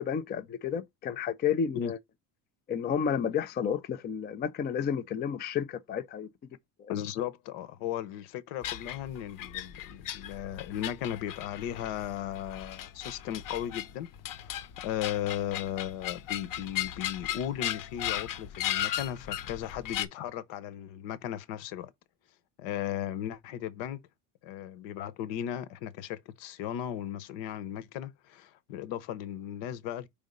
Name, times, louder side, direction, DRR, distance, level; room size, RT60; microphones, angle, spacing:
voice 1, 0.0-2.0 2.7-6.3 6.8-6.9, left 7 dB, 25° left, 0.4 m, -31 dB
voice 2, 6.9-14.1 14.4-21.9 22.6-24.0 24.4-30.1, left 11 dB, 75° left, 1.1 m, -36 dB
sound 1, 8.6-20.0, left 12 dB, 45° left, 0.9 m, -36 dB
5.1 x 3.7 x 5.2 m
cardioid pair, 140°, 45 cm